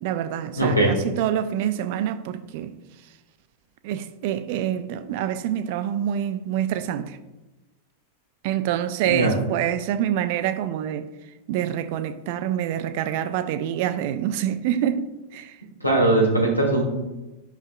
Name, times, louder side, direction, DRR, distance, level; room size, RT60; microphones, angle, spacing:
voice 1, 0.0-2.7 3.8-7.2 8.4-11.1 11.5-15.1 15.3-15.6, right 10 dB, 50° right, 0.4 m, -26 dB
voice 2, 0.6-1.0 9.0-9.3 15.8-16.8, right 2 dB, 90° left, 1.6 m, -20 dB
10.5 x 5.7 x 2.3 m
figure-of-eight pair, 90°, 0 cm